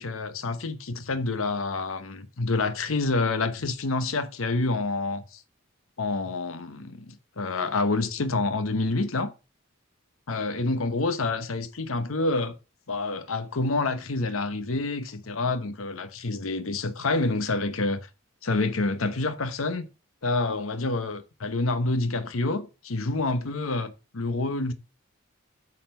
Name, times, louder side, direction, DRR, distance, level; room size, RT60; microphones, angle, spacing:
voice 1, 0.0-5.4 6.0-9.3 10.3-12.5 12.9-18.1 18.4-19.8 20.2-24.7, left 3 dB, 85° left, 0.9 m, -28 dB
8.5 x 4.2 x 6.5 m
head